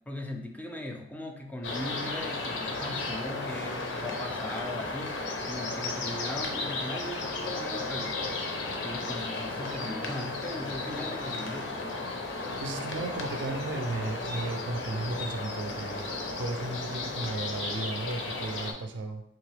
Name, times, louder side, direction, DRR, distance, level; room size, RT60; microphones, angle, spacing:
voice 1, 0.1-8.2 8.8-11.7, left 1 dB, 10° left, 3 dB, 0.4 m, -39 dB
sound 1, 1.6-18.7, left 3 dB, 85° left, 0.6 m, -34 dB
voice 2, 12.6-19.2, right 2 dB, 85° right, 6 dB, 0.5 m, -35 dB
3.7 x 2.9 x 3.3 m, 0.73 s
head